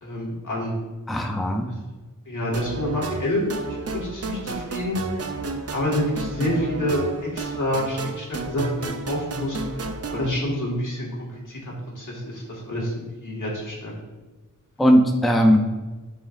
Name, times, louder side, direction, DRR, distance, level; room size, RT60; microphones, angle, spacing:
voice 1, 0.0-0.7 2.3-5.3 5.7-11.1 11.5-11.6 12.0-14.0, left 1 dB, 65° left, -4 dB, 2.0 m, -28 dB
voice 2, 1.1-1.7 14.8-15.7, equal, ahead, 2 dB, 0.6 m, -18 dB
sound 1, 2.5-10.3, right 4 dB, 45° right, 0.6 m, -32 dB
9.4 x 4.3 x 2.6 m, 1.2 s
wide cardioid pair, 60°, 33 cm